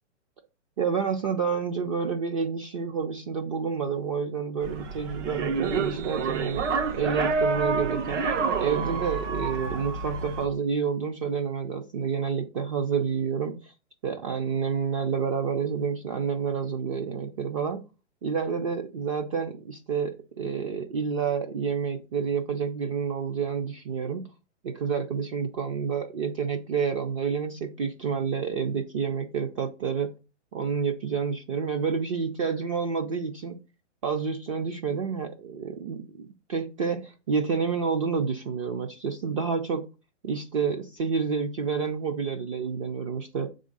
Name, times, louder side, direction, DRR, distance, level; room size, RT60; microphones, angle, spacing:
voice 1, 0.8-6.7 6.9-8.2 8.6-13.7 14.0-17.8 18.2-24.3 24.6-30.1 30.5-33.6 34.0-39.8 40.2-43.5, right 6 dB, 30° right, 6 dB, 0.4 m, -29 dB
sound 1, 4.6-10.5, right 4 dB, 75° right, 1.5 m, -28 dB
7.1 x 3.7 x 5.2 m, 0.31 s
hypercardioid pair, 150°, 36 cm